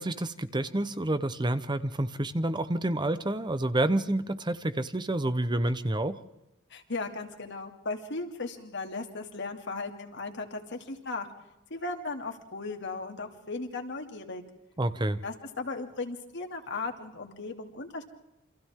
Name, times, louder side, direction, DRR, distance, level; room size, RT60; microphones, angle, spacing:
voice 1, 0.0-6.2 14.8-15.2, right 1 dB, 20° right, 12 dB, 0.9 m, -29 dB
voice 2, 6.7-11.3 11.7-14.4 15.2-18.0, left 3 dB, 60° left, 4 dB, 2.7 m, -36 dB
29.0 x 26.5 x 3.7 m, 0.94 s
head